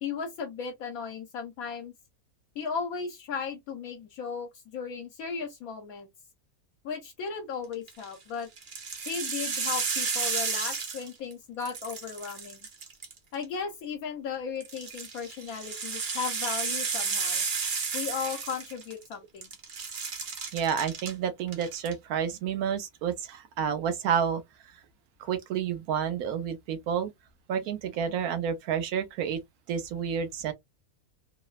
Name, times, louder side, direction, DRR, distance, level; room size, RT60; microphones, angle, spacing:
voice 1, 0.0-1.9 2.6-6.1 6.8-8.5 9.1-12.6 13.3-17.4 17.9-19.5, left 6 dB, 75° left, 1.0 m, -36 dB
sound 1, 7.7-8.1 8.6-11.3 11.6-13.4 14.6-19.1 19.4-21.1 21.5-21.9, right 5 dB, 45° right, 0.7 m, -32 dB
voice 2, 20.5-24.4 25.2-27.1 27.5-29.4 29.7-30.5, right 8 dB, 80° right, 1.1 m, -30 dB
3.1 x 2.0 x 2.3 m
omnidirectional pair, 1.6 m